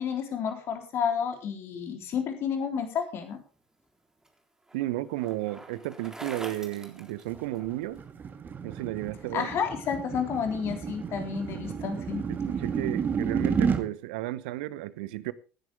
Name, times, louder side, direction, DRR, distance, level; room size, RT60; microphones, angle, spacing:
voice 1, 0.0-3.4 9.3-12.2, left 7 dB, 50° left, 3.6 m, -30 dB
Bicycle, 3.6-8.0, right 1 dB, 10° right, 3.7 m, -46 dB
voice 2, 4.7-8.0 8.6-9.5 12.3-15.3, right 16 dB, 70° right, 0.9 m, -33 dB
sound 1, 7.4-13.8, right 6 dB, 35° right, 2.0 m, -31 dB
18.0 x 10.5 x 3.5 m
figure-of-eight pair, 60°, 5 cm